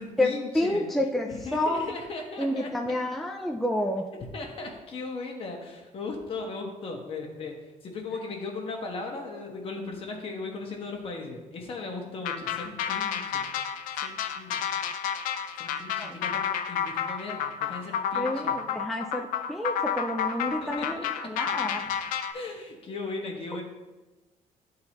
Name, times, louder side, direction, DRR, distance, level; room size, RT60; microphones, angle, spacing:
voice 1, 0.0-0.8 1.3-2.7 4.2-13.4 14.0-14.6 15.6-18.6 20.4-21.1 22.3-23.6, left 3 dB, 45° left, 1 dB, 1.3 m, -37 dB
voice 2, 0.5-1.9 2.4-4.1 16.0-16.1 18.1-21.9, left 1 dB, ahead, 1 dB, 0.3 m, -29 dB
sound 1, 12.2-22.3, left 8 dB, 90° left, 0.5 m, -30 dB
11.5 x 3.9 x 2.9 m, 1.1 s
cardioid pair, 140°, 13 cm